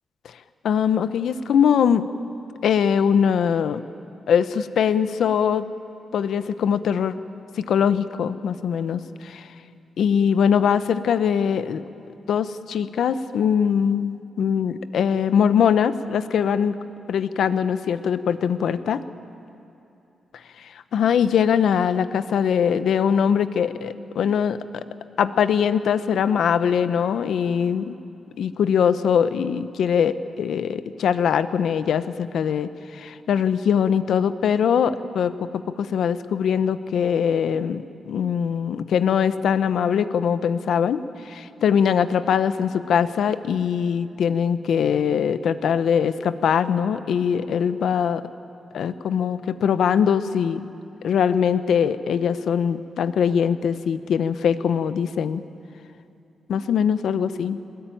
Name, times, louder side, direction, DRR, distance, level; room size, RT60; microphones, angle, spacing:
voice 1, 0.6-2.1 2.6-3.8 4.3-5.6 6.1-7.2 7.6-9.5 10.0-11.8 12.3-16.8 17.1-19.0 20.6-24.8 25.2-27.9 28.4-48.2 48.7-50.7 51.0-55.4 56.5-57.6, left 7 dB, 80° left, 12 dB, 0.8 m, -22 dB
21.5 x 21.0 x 9.2 m, 2.8 s
wide cardioid pair, 150°, 0 cm